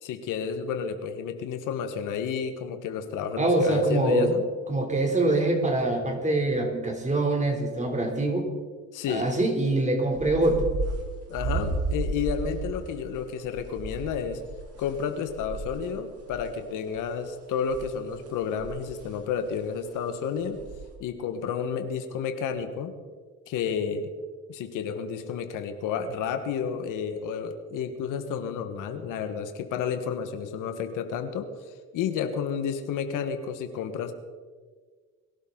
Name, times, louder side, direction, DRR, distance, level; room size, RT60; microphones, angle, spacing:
voice 1, 0.0-4.4 8.9-9.3 11.3-14.4 14.8-20.6 21.0-22.9 23.5-24.1 24.5-31.5 31.9-34.1, left 7 dB, 80° left, 8 dB, 1.5 m, -31 dB
voice 2, 3.4-4.3 4.7-8.5 9.1-10.7, right 2 dB, 25° right, 3 dB, 3.3 m, -24 dB
sound 1, 10.1-16.5 16.9-17.1 17.7-19.1 19.4-19.5 19.9-20.0 20.5-20.9, right 3 dB, 50° right, 3.4 m, -33 dB
22.5 x 12.0 x 3.9 m, 1.5 s
cardioid pair, 95°, 31 cm